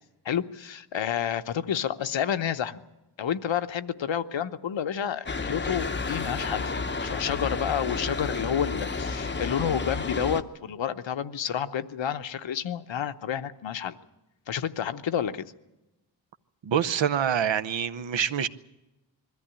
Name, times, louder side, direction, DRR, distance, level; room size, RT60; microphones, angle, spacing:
voice 1, 0.2-2.8 3.2-6.7 7.0-14.0 14.5-15.4, left 9 dB, 70° left, 11 dB, 0.9 m, -29 dB
sound 1, 5.3-10.4, left 4 dB, 25° left, 0.7 m, -31 dB
voice 2, 16.6-18.5, right 8 dB, 65° right, 13 dB, 0.9 m, -26 dB
21.5 x 14.0 x 10.0 m, 1.0 s
wide cardioid pair, 165°, 47 cm